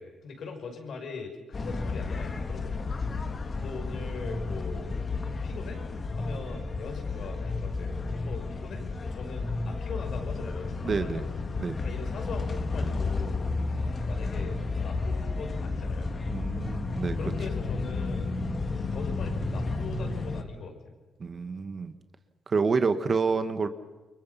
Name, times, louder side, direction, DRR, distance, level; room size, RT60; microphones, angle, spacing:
voice 1, 0.0-2.9 3.6-5.0 5.4-5.8 6.2-11.4 11.8-13.4 13.9-16.1 17.2-18.4 18.9-20.8, left 4 dB, 65° left, 3 dB, 6.1 m, -41 dB
sound 1, 1.5-20.4, left 3 dB, 35° left, 1.9 m, -32 dB
voice 2, 10.8-11.2 11.6-11.8 16.3-17.2 21.2-21.9 22.5-23.7, right 4 dB, 40° right, 10 dB, 1.6 m, -28 dB
29.0 x 23.5 x 5.8 m, 1.2 s
cardioid pair, 90°, 0 cm